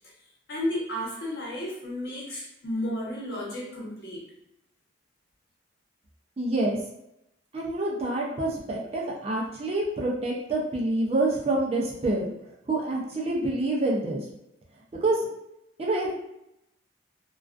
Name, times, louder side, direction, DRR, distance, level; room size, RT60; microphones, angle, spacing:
voice 1, 0.5-4.2, left 1 dB, 55° left, -5 dB, 0.9 m, -32 dB
voice 2, 6.4-6.8 7.5-12.3 12.7-14.2 15.0-15.2 15.8-16.1, right 2 dB, 30° right, -3 dB, 0.4 m, -27 dB
2.3 x 2.3 x 2.4 m, 0.82 s
head